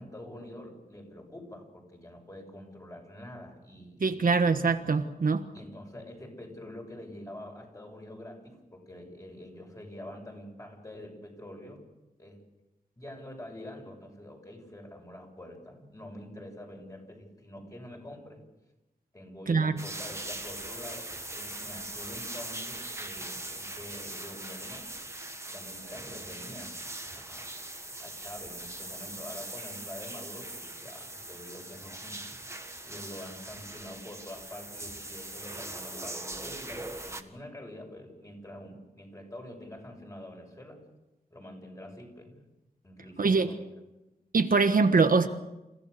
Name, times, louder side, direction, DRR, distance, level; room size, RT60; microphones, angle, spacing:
voice 1, 0.0-4.3 5.5-11.9 12.2-12.4 13.0-18.4 19.1-24.9 25.5-27.5 28.0-32.5 32.8-40.8 41.3-42.4 42.8-43.7, left 1 dB, 20° left, 2 dB, 6.8 m, -46 dB
voice 2, 4.0-5.4 19.5-19.7 43.2-43.5 44.3-45.3, right 4 dB, 65° right, 7 dB, 1.4 m, -23 dB
sound 1, 19.8-37.2, right 1 dB, 15° right, 1.6 m, -41 dB
29.5 x 16.0 x 6.8 m, 0.99 s
wide cardioid pair, 100°, 16 cm